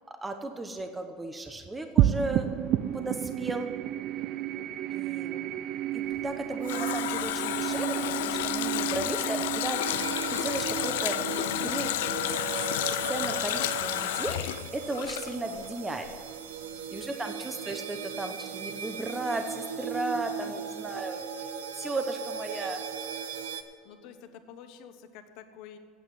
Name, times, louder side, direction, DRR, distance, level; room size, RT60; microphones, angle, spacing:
voice 1, 0.1-2.5 2.9-3.7 4.9-5.6 5.9-11.2 11.6-12.3 13.1-16.1 16.9-21.3 21.8-22.8, right 2 dB, 15° right, 6 dB, 0.9 m, -35 dB
sound 1, 2.0-12.6, right 12 dB, 55° right, 0.4 m, -31 dB
Water tap faucet, 6.2-15.8 16.1-16.2, left 15 dB, 85° left, 0.4 m, -31 dB
sound 2, 9.8-23.6, right 7 dB, 90° right, 0.8 m, -37 dB
voice 2, 16.6-17.1 20.1-20.7 21.6-21.7 23.6-25.8, left 8 dB, 65° left, 8 dB, 1.1 m, -50 dB
9.1 x 7.9 x 9.1 m, 2.2 s
supercardioid pair, 110°, 0 cm